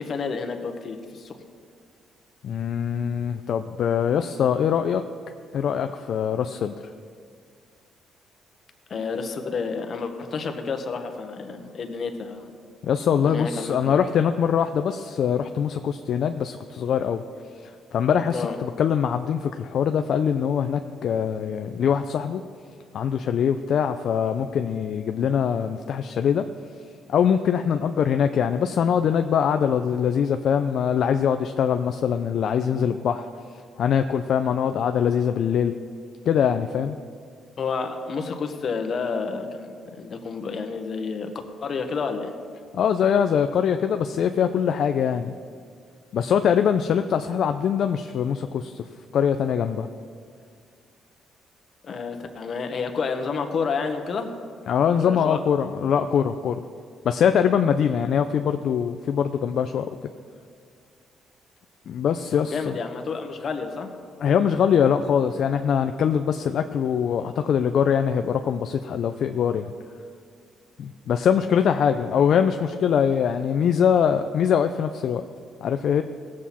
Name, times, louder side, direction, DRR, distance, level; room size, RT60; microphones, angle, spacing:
voice 1, 0.0-1.4 8.9-12.5 13.2-13.9 18.3-18.6 37.6-41.3 41.6-42.3 51.8-54.3 55.0-55.4 62.3-63.9, left 5 dB, 50° left, 5 dB, 1.2 m, -30 dB
voice 2, 2.4-5.0 5.5-6.7 12.8-17.2 17.5-22.4 22.9-26.4 27.1-33.3 33.8-35.7 36.3-37.0 42.7-45.3 46.1-48.9 49.1-49.9 54.7-56.6 57.0-60.1 61.9-62.7 64.2-69.7 70.8-75.2 75.6-76.0, left 8 dB, 65° left, 7 dB, 0.4 m, -23 dB
17.5 x 7.5 x 4.2 m, 2.1 s
cardioid pair, 95°, 0 cm